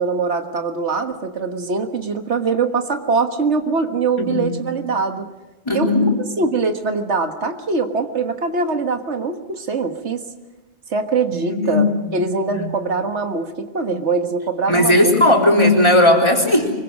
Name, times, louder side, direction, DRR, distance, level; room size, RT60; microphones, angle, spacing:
voice 1, 0.0-5.3 5.7-5.9 6.4-10.2 10.9-15.2, right 4 dB, 90° right, 6 dB, 1.8 m, -22 dB
voice 2, 4.2-4.6 5.7-6.1 11.3-12.2 12.5-12.7 14.7-16.7, left 1 dB, 25° left, -1 dB, 3.7 m, -16 dB
24.5 x 22.5 x 6.4 m, 1.1 s
omnidirectional pair, 1.1 m